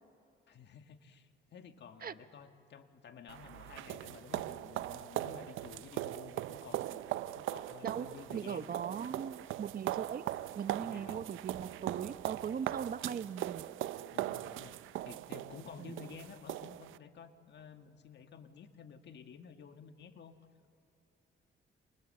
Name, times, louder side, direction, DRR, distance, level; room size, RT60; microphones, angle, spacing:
voice 1, 0.5-8.7 10.8-11.3 14.1-14.8 15.0-20.3, left 7 dB, 60° left, 8 dB, 1.8 m, -52 dB
sound 1, 3.3-17.0, right 14 dB, 85° right, 0.6 m, -40 dB
voice 2, 8.3-10.2 10.5-13.7 15.8-16.0, right 7 dB, 50° right, 13 dB, 1.0 m, -39 dB
28.5 x 27.5 x 7.7 m, 2.6 s
cardioid pair, 90°, 20 cm